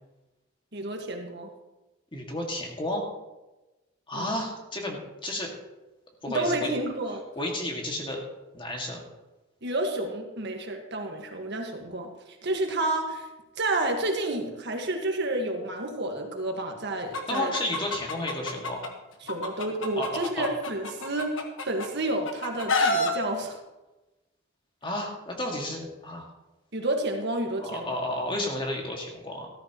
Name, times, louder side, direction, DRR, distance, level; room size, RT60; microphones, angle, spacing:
voice 1, 0.7-1.5 4.1-4.3 6.3-7.2 9.6-13.3 13.6-17.5 19.2-21.4 21.7-23.6 26.7-28.0, right 2 dB, 60° right, 3 dB, 1.6 m, -30 dB
voice 2, 2.1-3.1 4.1-5.5 6.2-6.7 7.4-8.2 8.5-9.0 17.3-18.8 20.0-20.5 24.8-26.3 27.6-29.5, left 1 dB, 25° left, 0 dB, 2.1 m, -32 dB
Chicken rooster, 17.1-18.9 19.3-21.9 22.2-23.1, left 2 dB, 70° left, 1.4 m, -28 dB
14.0 x 13.0 x 3.0 m, 1.1 s
head